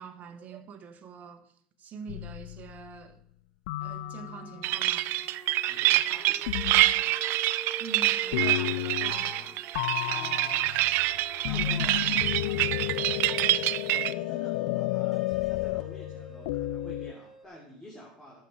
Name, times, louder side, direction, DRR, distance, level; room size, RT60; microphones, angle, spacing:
voice 1, 0.0-3.2 3.8-5.1 7.8-9.6, right 6 dB, 40° right, 1.4 m, -45 dB
sound 1, 2.0-2.2 3.8-17.5, right 1 dB, 5° right, 1.9 m, -48 dB
sound 2, 2.1-2.9 3.7-4.7 6.5-7.0 8.3-9.5 9.7-17.1, left 16 dB, 70° left, 0.4 m, -32 dB
sound 3, 4.6-14.1, right 16 dB, 55° right, 0.4 m, -26 dB
voice 2, 5.7-7.1 10.0-10.6 11.4-13.0 14.0-18.4, left 1 dB, 10° left, 3.0 m, -49 dB
12.0 x 7.1 x 5.0 m
hypercardioid pair, 95°, 4 cm